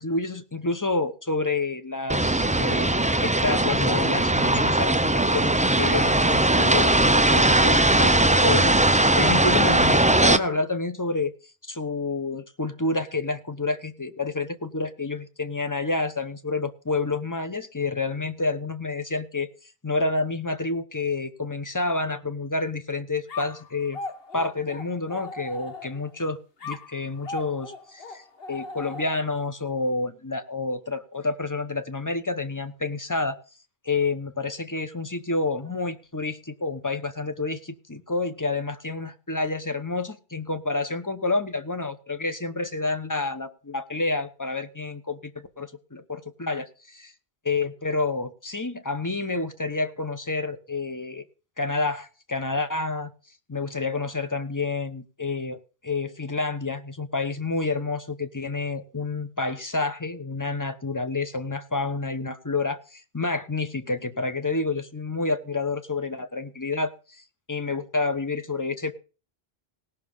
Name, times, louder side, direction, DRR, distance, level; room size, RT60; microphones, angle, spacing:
voice 1, 0.0-11.3 11.6-19.5 19.8-24.0 24.3-33.4 33.8-47.1 47.5-51.2 51.6-53.1 53.5-68.9, left 3 dB, 20° left, 10 dB, 1.0 m, -29 dB
sound 1, 2.1-10.4, right 2 dB, 10° right, 0.4 m, -20 dB
sound 2, 23.3-26.2 26.6-29.5, left 3 dB, 65° left, 1.5 m, -39 dB
18.0 x 6.3 x 5.5 m, 0.35 s
omnidirectional pair, 1.1 m